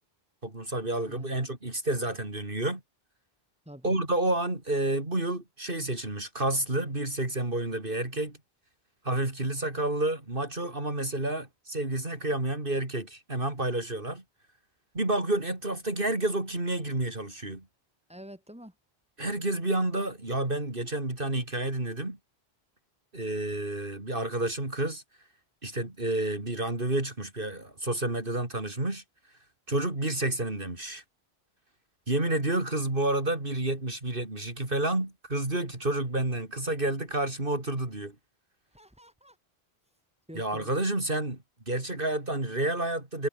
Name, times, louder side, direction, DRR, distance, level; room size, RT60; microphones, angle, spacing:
voice 1, 0.4-2.8 3.8-8.4 9.0-14.2 14.9-17.6 19.2-22.2 23.1-25.0 25.6-29.0 29.7-31.0 32.1-38.1 40.3-41.4 41.7-43.3, right 2 dB, 60° right, 4.4 m, -30 dB
voice 2, 18.1-18.7 38.7-39.4 40.3-40.8, equal, 5° right, 5.9 m, -47 dB
omnidirectional pair, 1.0 m